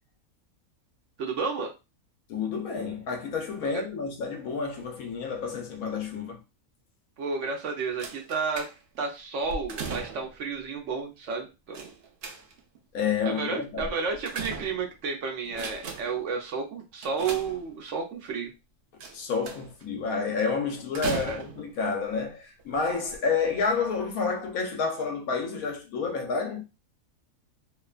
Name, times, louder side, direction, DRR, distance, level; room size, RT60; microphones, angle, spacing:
voice 1, 1.2-1.7 3.6-3.8 7.2-8.7 9.0-11.9 13.2-18.5 21.3-21.4, right 5 dB, 65° right, 0.9 m, -31 dB
voice 2, 2.3-6.4 12.9-13.9 19.1-26.6, left 5 dB, 80° left, 1.1 m, -29 dB
sound 1, 8.0-9.0 9.5-10.4 11.7-12.8 13.8-15.1 15.5-16.3 17.0-18.0 19.0-19.8 20.9-21.8 22.6-22.7 23.1-23.2, right 4 dB, 90° right, 0.4 m, -37 dB
2.9 x 2.1 x 2.4 m
omnidirectional pair, 1.5 m